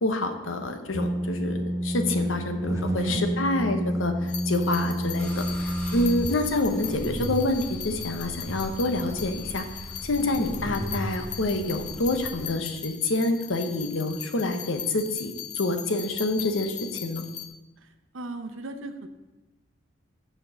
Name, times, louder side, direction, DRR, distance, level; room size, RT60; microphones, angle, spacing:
voice 1, 0.0-9.6 10.1-17.3, left 2 dB, 80° left, 7 dB, 0.9 m, -27 dB
sound 1, 0.9-6.3, equal, 15° right, 0.5 m, -28 dB
voice 2, 2.9-3.7 6.1-6.4 10.2-10.5 18.1-19.1, right 2 dB, 85° right, 8 dB, 0.8 m, -38 dB
sound 2, 4.3-17.5, left 10 dB, 40° left, 0.7 m, -39 dB
sound 3, 5.2-12.4, equal, 10° left, 1.2 m, -37 dB
7.4 x 4.5 x 6.4 m, 1.1 s
head